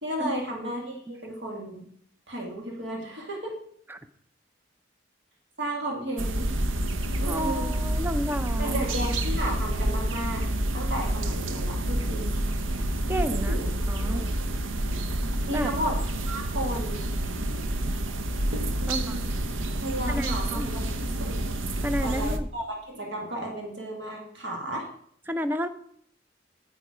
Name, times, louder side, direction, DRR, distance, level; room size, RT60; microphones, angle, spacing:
voice 1, 0.0-1.8 2.3-3.5 5.6-6.5 7.2-7.7 8.6-10.4 10.7-12.3 13.3-14.3 15.5-16.0 16.3-17.1 18.8-19.2 19.8-21.4 22.0-24.9, right 1 dB, 65° right, 0 dB, 1.9 m, -33 dB
sound 1, 6.2-22.4, right 1 dB, 90° right, 0.8 m, -28 dB
voice 2, 7.3-8.8 13.1-13.6 13.9-14.3 15.5-15.7 18.9-19.2 20.1-20.7 21.8-22.5 25.3-25.7, equal, 10° right, 11 dB, 0.5 m, -31 dB
9.0 x 8.0 x 4.9 m, 0.65 s
head